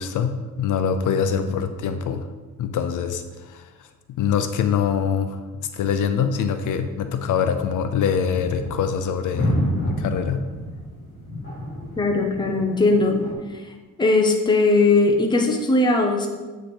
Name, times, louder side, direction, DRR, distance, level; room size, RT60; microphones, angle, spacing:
voice 1, 0.0-2.3 2.6-3.9 4.2-5.4 5.7-10.4, left 7 dB, 60° left, 8 dB, 0.6 m, -24 dB
sound 1, 7.3-13.3, left 1 dB, 30° left, 2.4 m, -29 dB
voice 2, 12.0-13.2 14.0-16.3, left 3 dB, 15° left, 2 dB, 0.7 m, -19 dB
7.7 x 5.1 x 4.3 m, 1.3 s
cardioid pair, 160°, 34 cm